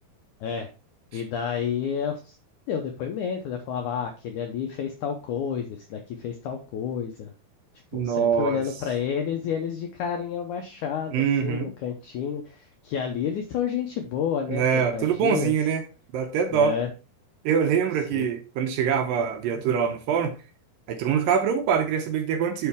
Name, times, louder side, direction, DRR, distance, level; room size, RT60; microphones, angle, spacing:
voice 1, 1.1-2.3 2.7-7.3 7.9-15.5 16.5-16.9 18.1-18.3, left 7 dB, 80° left, 1.8 m, -30 dB
voice 2, 7.9-8.6 11.1-11.7 14.5-15.8 16.1-16.8 17.4-20.4 20.9-22.7, right 7 dB, 75° right, 2.2 m, -24 dB
6.9 x 5.5 x 3.5 m
omnidirectional pair, 4.5 m